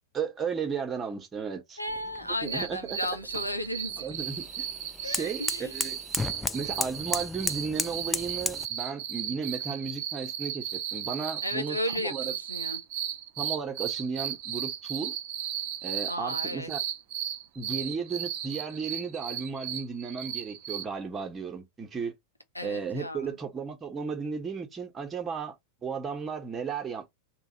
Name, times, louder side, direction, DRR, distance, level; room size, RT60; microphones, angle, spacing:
voice 1, 0.1-1.8 2.2-3.0 4.0-4.7 5.0-6.0 6.5-11.8 12.0-12.3 13.4-15.1 15.8-16.8 17.5-22.2 22.6-25.5 25.8-27.1, right 5 dB, 20° right, 1.1 m, -34 dB
voice 2, 1.8-4.1 5.0-5.7 11.4-12.8 16.1-16.7 22.5-23.4, left 1 dB, 85° left, 0.7 m, -34 dB
sound 1, 1.9-8.7, left 3 dB, 10° left, 0.3 m, -35 dB
sound 2, 2.4-20.8, right 10 dB, 45° right, 0.6 m, -35 dB
3.3 x 2.3 x 4.0 m
figure-of-eight pair, 90°, 0 cm